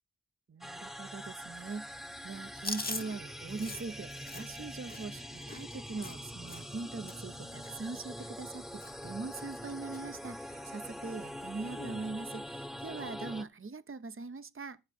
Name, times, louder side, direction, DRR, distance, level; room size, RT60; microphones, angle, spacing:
voice 1, 0.5-1.9 2.2-14.8, right 3 dB, 35° right, 0.8 m, -42 dB
sound 1, 0.6-13.4, equal, ahead, 1.1 m, -44 dB
Chewing mastication, 2.6-6.8 7.1-7.3 7.6-8.5 8.8-9.1 9.3-10.0 10.5-10.6 11.6-12.1, left 2 dB, 25° left, 1.1 m, -43 dB
15.0 x 7.2 x 5.3 m
wide cardioid pair, 65°, 38 cm